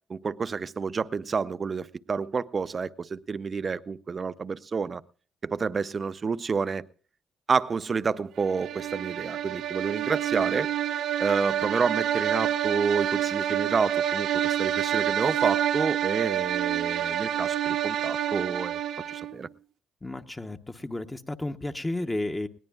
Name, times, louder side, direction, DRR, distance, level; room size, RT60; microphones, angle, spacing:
voice 1, 0.1-5.0 5.4-6.9 7.5-10.7 11.2-18.8 19.1-19.5, right 5 dB, 40° right, 0.5 m, -29 dB
sound 1, 8.4-19.4, right 10 dB, 80° right, 0.9 m, -28 dB
voice 2, 20.0-22.5, left 2 dB, 15° left, 0.9 m, -32 dB
20.0 x 17.5 x 2.3 m
supercardioid pair, 70°, 0 cm